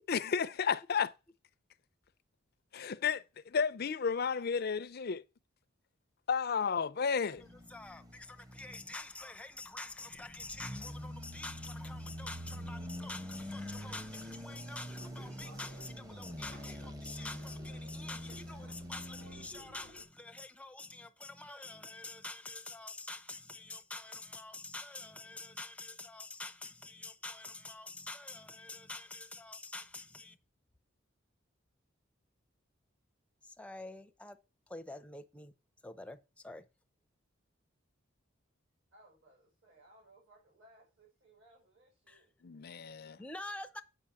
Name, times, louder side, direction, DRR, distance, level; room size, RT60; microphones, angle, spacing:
voice 1, 0.1-1.1 2.7-5.2 6.3-7.4 42.4-43.2, left 6 dB, 50° left, 0.5 m, -32 dB
sound 1, 7.4-9.1 9.7-19.5, equal, 20° right, 1.0 m, -45 dB
voice 2, 7.7-30.4 33.4-34.4 34.7-35.5 35.8-36.7 42.1-42.2 43.2-43.8, left 2 dB, 5° left, 0.7 m, -47 dB
sound 2, 14.9-20.0, equal, 80° right, 4.4 m, -56 dB
voice 3, 38.9-42.3, right 1 dB, 65° right, 5.6 m, -63 dB
8.8 x 5.2 x 7.1 m
head